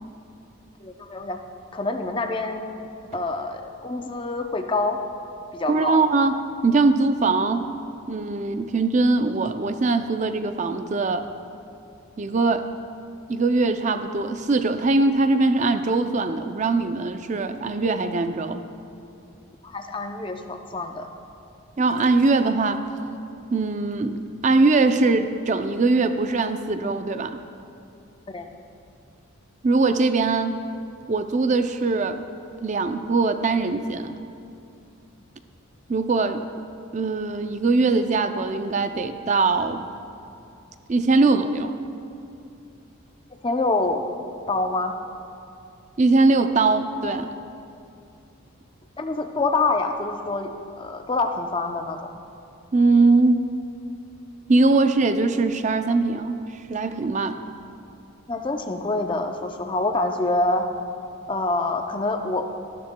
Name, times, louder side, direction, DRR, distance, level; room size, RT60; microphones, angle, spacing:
voice 1, 0.8-1.4 1.7-2.9 3.1-5.0 5.5-6.0 19.6-21.1 28.3-28.5 43.4-44.0 44.5-44.9 49.0-50.5 50.8-52.1 58.3-60.7 61.3-62.6, left 2 dB, 25° left, 5 dB, 0.5 m, -26 dB
voice 2, 5.7-7.7 8.1-11.3 12.2-12.7 13.3-18.6 21.8-22.8 23.5-27.4 29.6-30.6 31.1-32.2 32.6-34.1 35.9-36.4 36.9-39.9 40.9-41.7 46.0-47.3 52.7-53.5 54.5-56.4 56.7-57.4, right 3 dB, 35° right, 8 dB, 0.4 m, -21 dB
14.0 x 12.0 x 2.2 m, 2.6 s
head